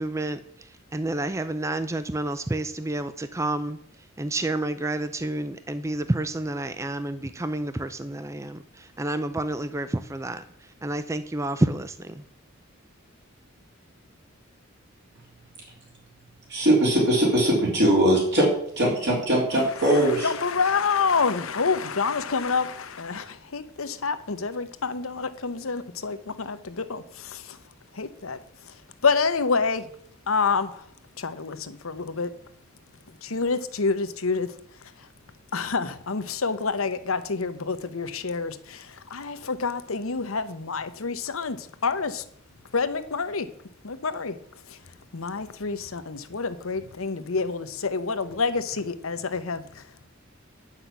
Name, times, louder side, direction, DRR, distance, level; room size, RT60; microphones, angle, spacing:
voice 1, 0.0-3.8 4.2-10.4 10.8-12.2, right 1 dB, 15° right, 0.4 m, -29 dB
voice 2, 16.5-18.5 18.8-20.3, right 1 dB, 55° right, 3.4 m, -21 dB
voice 3, 19.6-27.6 27.9-29.9 30.3-30.9 31.2-32.3 33.2-35.1 35.5-42.2 42.7-43.5 43.8-44.4 44.7-44.8 45.1-50.1, left 4 dB, 85° left, 0.9 m, -28 dB
9.9 x 5.8 x 8.2 m
head